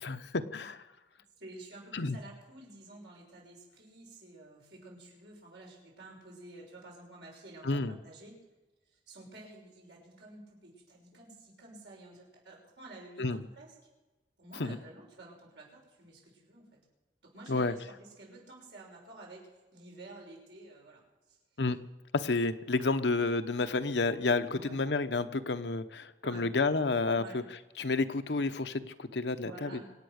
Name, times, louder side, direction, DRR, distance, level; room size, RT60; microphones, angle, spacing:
voice 1, 0.0-0.8 1.9-2.2 7.6-8.0 13.2-13.4 14.6-14.8 17.5-17.7 21.6-21.8 22.1-27.4 27.8-29.7, left 3 dB, 75° left, 10 dB, 0.9 m, -30 dB
voice 2, 1.4-8.3 8.9-13.8 14.4-16.8 17.2-21.0 21.3-21.4 24.5-24.8 26.2-26.5 27.1-27.4 29.4-29.9, right 2 dB, 75° right, -2 dB, 6.2 m, -51 dB
25.5 x 8.7 x 6.5 m, 1.1 s
head